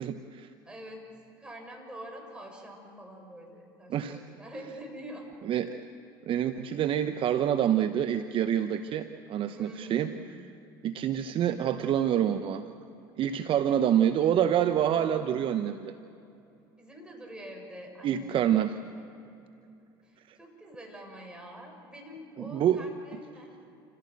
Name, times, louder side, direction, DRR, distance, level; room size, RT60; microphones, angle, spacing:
voice 1, 0.0-0.5 3.9-4.2 5.5-5.7 6.3-10.1 10.8-12.7 13.2-16.0 18.0-18.7 20.3-20.4 22.4-22.8, right 10 dB, 50° right, 9 dB, 0.9 m, -27 dB
voice 2, 0.6-5.4 9.5-10.2 16.8-18.7 18.9-19.1 20.0-23.5, right 1 dB, 5° right, 1 dB, 6.9 m, -45 dB
28.0 x 16.0 x 7.9 m, 2.7 s
hypercardioid pair, 75°, 12 cm